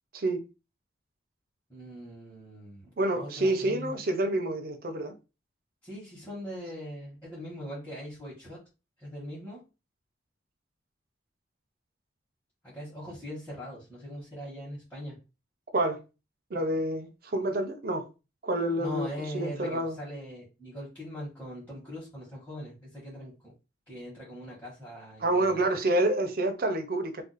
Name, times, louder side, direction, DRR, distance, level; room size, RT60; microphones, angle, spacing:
voice 1, 1.7-3.9 5.8-8.6 9.0-9.6 12.6-15.2 18.8-23.5 23.9-25.7, equal, 10° left, 1.0 m, -41 dB
voice 2, 3.0-5.1 15.7-16.0 16.5-18.1 18.4-20.0 25.2-27.2, right 1 dB, 50° right, 0.5 m, -28 dB
2.5 x 2.3 x 3.9 m
head